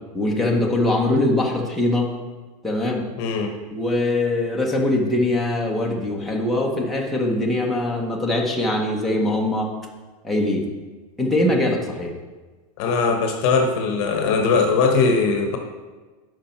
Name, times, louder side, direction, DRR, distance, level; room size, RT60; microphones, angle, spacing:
voice 1, 0.1-2.1 2.6-3.1 3.7-9.7 10.2-10.7 11.2-12.1, left 1 dB, ahead, -3 dB, 0.8 m, -22 dB
voice 2, 3.2-3.5 11.5-11.6 12.8-15.6, left 4 dB, 45° left, 5 dB, 1.0 m, -20 dB
11.5 x 5.2 x 4.4 m, 1.3 s
supercardioid pair, 170°, 19 cm